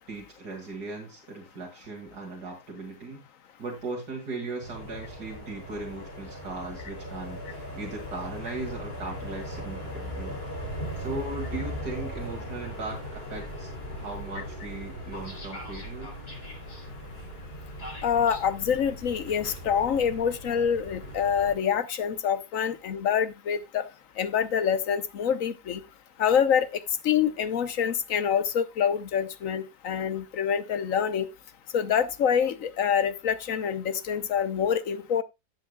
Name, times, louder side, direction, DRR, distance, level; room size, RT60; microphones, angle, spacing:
voice 1, 0.1-3.2 3.6-10.4 11.0-13.7 14.0-16.1, right 3 dB, 85° right, 2.9 m, -38 dB
sound 1, 4.6-21.5, equal, 35° left, 3.8 m, -38 dB
voice 2, 18.0-23.9 24.2-25.8 26.2-31.3 31.7-35.2, left 8 dB, 60° left, 1.2 m, -26 dB
16.5 x 7.2 x 2.3 m
omnidirectional pair, 1.7 m